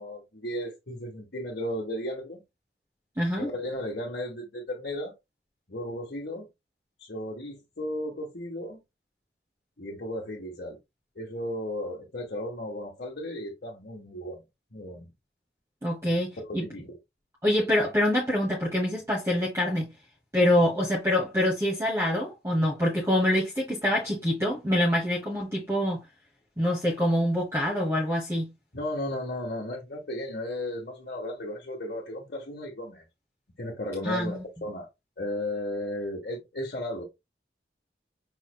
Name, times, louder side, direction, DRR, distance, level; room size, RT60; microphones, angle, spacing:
voice 1, 0.0-2.4 3.4-5.1 5.7-6.5 7.0-8.8 9.8-10.8 11.1-14.4 14.7-15.1 16.4-17.0 28.7-33.0 33.6-34.9 35.2-37.0, left 1 dB, 60° left, 1.3 m, -35 dB
voice 2, 3.2-3.5 15.8-16.6 17.4-19.9 20.3-26.0 26.6-28.5 34.0-34.4, left 1 dB, 15° right, 1.2 m, -25 dB
5.6 x 3.2 x 2.3 m
head